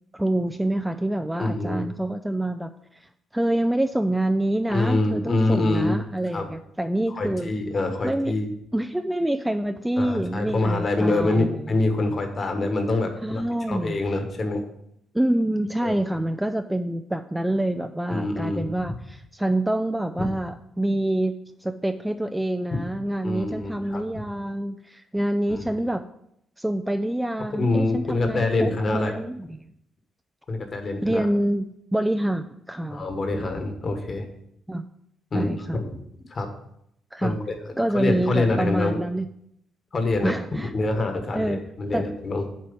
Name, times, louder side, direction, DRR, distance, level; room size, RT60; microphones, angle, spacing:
voice 1, 0.1-2.7 3.0-7.5 8.0-8.3 8.7-11.6 13.2-14.0 15.1-26.0 26.6-29.7 31.0-33.1 34.7-34.8 35.3-35.8 37.1-37.4 37.8-39.3 40.2-40.7 41.3-41.6 41.9-42.0, right 1 dB, 5° right, 8 dB, 0.3 m, -26 dB
voice 2, 1.4-1.8 4.7-6.0 6.3-6.5 7.1-8.5 10.0-14.6 15.8-16.0 18.1-18.9 20.2-20.3 22.7-22.8 23.2-24.2 25.5-25.7 27.5-29.2 30.5-31.3 32.9-34.3 35.3-36.0 36.3-36.5 37.2-37.6 37.9-39.0 39.9-40.3 40.7-42.5, left 2 dB, 35° left, 5 dB, 1.4 m, -25 dB
7.5 x 4.5 x 7.0 m, 0.75 s
cardioid pair, 130°, 0 cm